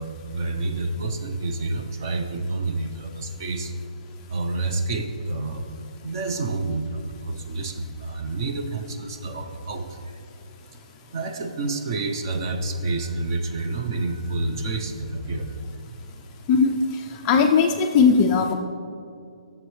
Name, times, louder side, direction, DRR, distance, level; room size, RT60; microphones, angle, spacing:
voice 1, 0.0-3.7 4.3-5.7 6.0-10.1 10.7-10.8 11.1-16.5, right 2 dB, 30° right, 5 dB, 0.6 m, -29 dB
voice 2, 17.2-18.5, left 5 dB, 15° left, 3 dB, 0.3 m, -18 dB
11.0 x 6.9 x 3.2 m, 2.4 s
hypercardioid pair, 170°, 4 cm